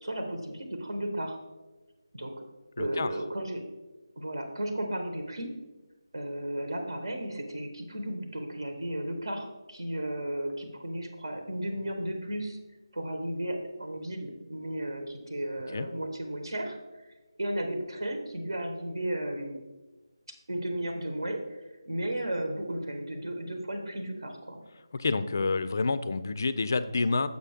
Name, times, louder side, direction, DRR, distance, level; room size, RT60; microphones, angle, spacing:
voice 1, 0.0-1.4 2.1-2.4 2.8-3.6 4.1-5.5 6.1-12.6 12.9-16.8 17.4-19.6 20.5-21.6 21.8-24.6, right 1 dB, 75° right, 4 dB, 1.2 m, -34 dB
voice 2, 2.8-3.1 15.7-15.9 24.9-27.3, left 3 dB, 40° left, 13 dB, 0.3 m, -28 dB
6.7 x 5.6 x 3.5 m, 1.2 s
figure-of-eight pair, 170°, 2 cm